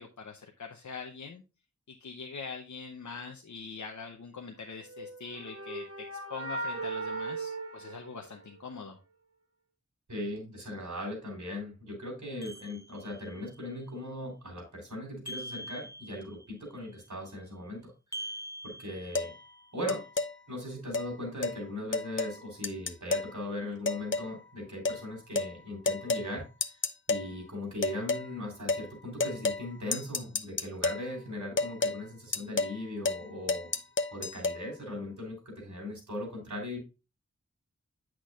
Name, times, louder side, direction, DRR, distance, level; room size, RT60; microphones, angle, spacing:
voice 1, 0.0-1.4 1.9-9.0, left 5 dB, 85° left, 4 dB, 0.8 m, -43 dB
sound 1, 4.8-8.7, right 3 dB, 50° right, 1.1 m, -38 dB
voice 2, 10.1-17.9 18.6-19.3 19.7-20.0 20.5-26.8 27.1-33.7 34.1-36.8, left 1 dB, 80° right, 0 dB, 3.5 m, -39 dB
sound 2, 12.4-13.4 15.3-16.5 18.1-19.6, right 1 dB, 10° left, 0.8 m, -43 dB
sound 3, 19.1-19.3 19.9-20.3 20.9-21.1 21.4-21.6 21.9-22.4 22.6-23.3 23.9-24.3 24.8-25.0 25.4-25.5 25.9-26.3 26.6-27.3 27.8-28.3 28.7-28.9 29.2-29.7 29.9-31.0 31.6-32.0 32.3-32.8 33.0-33.2 33.5-34.6, left 3 dB, 45° left, 0.6 m, -30 dB
8.3 x 6.0 x 2.4 m, 0.29 s
wide cardioid pair, 60°, 29 cm